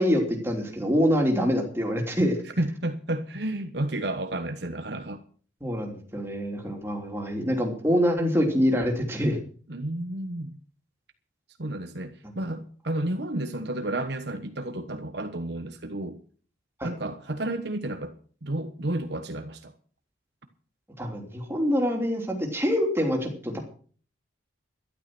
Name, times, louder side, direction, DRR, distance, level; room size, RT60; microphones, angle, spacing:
voice 1, 0.0-2.4 5.6-9.4 16.8-16.9 21.0-23.6, equal, 10° right, 1 dB, 3.2 m, -25 dB
voice 2, 2.6-5.2 9.7-10.6 11.6-16.2 16.8-18.1 18.4-19.7, right 1 dB, 60° right, 7 dB, 1.2 m, -31 dB
12.5 x 12.0 x 6.2 m, 0.43 s
head